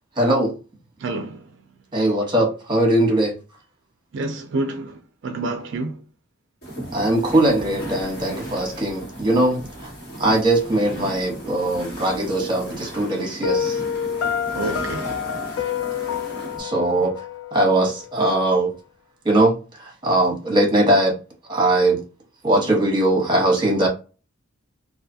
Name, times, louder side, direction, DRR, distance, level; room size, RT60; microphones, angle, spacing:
voice 1, 0.2-0.6 1.9-3.3 6.9-9.9 10.2-13.8 16.6-17.1 17.5-18.7 19.2-21.1 21.5-22.0 22.4-23.9, right 1 dB, 25° right, 1.1 m, -20 dB
voice 2, 1.0-1.4 4.1-6.0 14.5-15.1, right 2 dB, 65° right, 0.4 m, -28 dB
sound 1, 6.6-16.6, right 1 dB, 55° left, 1.5 m, -36 dB
Piano, 13.4-18.4, left 8 dB, 80° left, 0.3 m, -28 dB
2.5 x 2.4 x 2.6 m
head